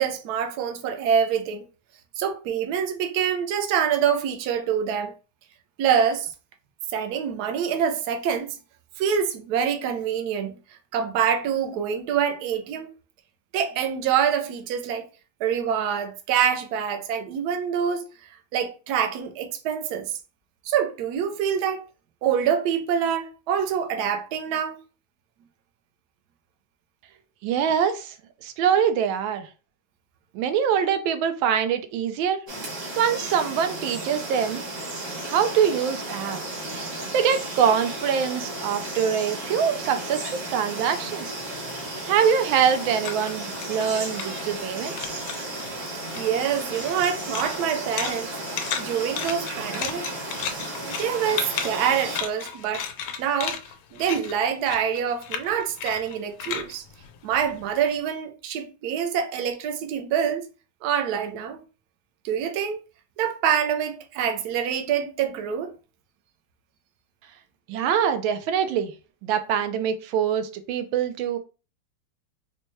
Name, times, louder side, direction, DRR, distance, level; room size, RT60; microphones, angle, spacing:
voice 1, 0.0-1.7 2.2-5.1 5.8-6.3 6.9-8.5 9.0-10.6 10.9-12.9 13.5-15.0 15.4-18.1 18.5-20.1 20.7-21.8 22.2-24.8 46.2-48.3 48.8-50.0 50.8-52.9 53.2-53.6 53.9-56.8 57.2-60.5 60.8-61.6 62.2-62.8 63.2-65.7, right 8 dB, 70° right, 1.0 m, -25 dB
voice 2, 27.4-28.1 28.4-29.5 30.3-32.5 33.0-34.6 35.3-36.4 37.1-41.3 42.1-45.0 67.7-68.9 69.2-71.4, right 8 dB, 90° right, 1.4 m, -24 dB
sound 1, 32.5-52.2, right 1 dB, 45° right, 1.3 m, -34 dB
sound 2, 40.8-44.7 45.0-45.7 46.1-57.9, left 8 dB, 85° left, 1.3 m, -35 dB
4.3 x 2.2 x 3.1 m
omnidirectional pair, 2.1 m